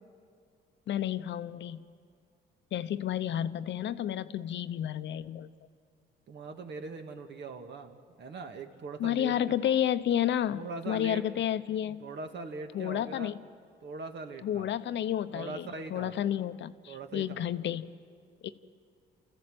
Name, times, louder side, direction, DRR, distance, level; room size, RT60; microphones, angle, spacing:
voice 1, 0.9-1.9 2.7-5.5 9.0-12.0 12.7-13.4 14.4-17.9 18.4-18.5, left 10 dB, 65° left, 13 dB, 0.8 m, -31 dB
voice 2, 6.3-9.6 10.5-11.5 12.0-13.4 13.8-14.7 15.3-16.2 16.9-17.5, right 3 dB, 60° right, 6 dB, 1.8 m, -41 dB
29.5 x 14.5 x 7.8 m, 2.2 s
cardioid pair, 90°, 20 cm